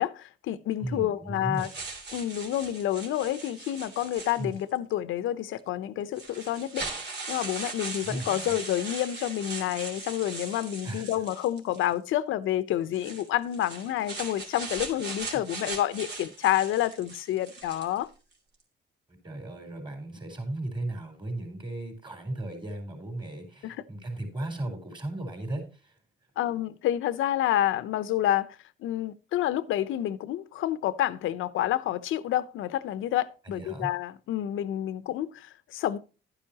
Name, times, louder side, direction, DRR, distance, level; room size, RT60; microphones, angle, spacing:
voice 1, 0.0-1.7 2.1-6.9 7.3-18.1 23.6-23.8 26.4-36.0, left 12 dB, 80° left, 0.8 m, -29 dB
voice 2, 0.8-1.7 4.4-4.6 8.0-8.5 10.8-11.1 15.3-15.4 19.2-26.0 33.4-33.9, right 1 dB, 25° right, 4.2 m, -36 dB
sound 1, 1.6-4.8 5.6-5.7 6.1-11.9 12.9-18.0, right 3 dB, 60° right, 3.1 m, -39 dB
11.5 x 9.8 x 2.9 m
cardioid pair, 90°, 20 cm